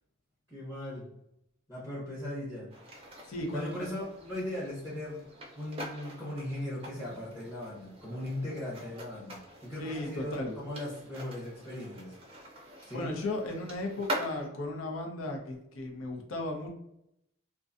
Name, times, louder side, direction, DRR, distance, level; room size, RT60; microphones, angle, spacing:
voice 1, 0.5-1.1 1.7-2.7 3.5-5.3 5.5-12.6 12.9-13.1, left 1 dB, 15° left, -8 dB, 0.7 m, -38 dB
sound 1, 2.7-14.5, right 1 dB, 30° right, 0.4 m, -44 dB
voice 2, 3.3-3.7 9.8-10.5 12.9-16.7, left 2 dB, 85° left, 1 dB, 0.7 m, -35 dB
2.5 x 2.2 x 2.5 m, 0.80 s
head